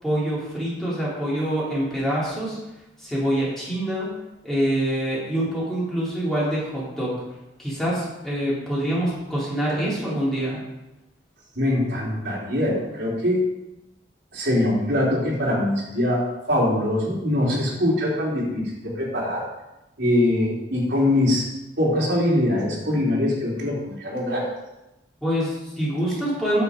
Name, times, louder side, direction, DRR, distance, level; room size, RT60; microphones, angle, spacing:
voice 1, 0.0-2.6 3.0-4.1 4.4-7.1 7.6-10.6 25.2-26.6, right 1 dB, ahead, -8 dB, 3.8 m, -25 dB
voice 2, 11.6-13.4 14.3-19.4 20.0-21.5 21.8-24.4, left 1 dB, 75° right, -4 dB, 3.8 m, -23 dB
9.9 x 7.5 x 5.3 m, 0.95 s
head